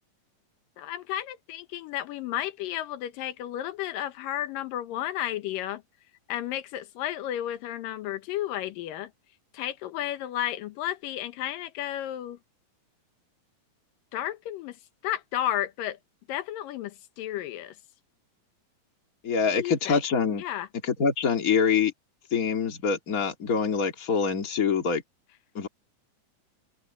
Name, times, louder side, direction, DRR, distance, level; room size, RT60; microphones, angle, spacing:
voice 1, 0.8-5.8 6.3-9.1 9.5-12.4 14.1-14.8 15.0-16.0 16.3-17.7 19.5-20.0 20.4-20.7, left 12 dB, 85° left, 2.7 m, -32 dB
voice 2, 19.2-20.4 20.8-21.9 22.3-25.0 25.5-25.7, left 6 dB, 30° left, 2.3 m, -25 dB
omnidirectional pair, 3.8 m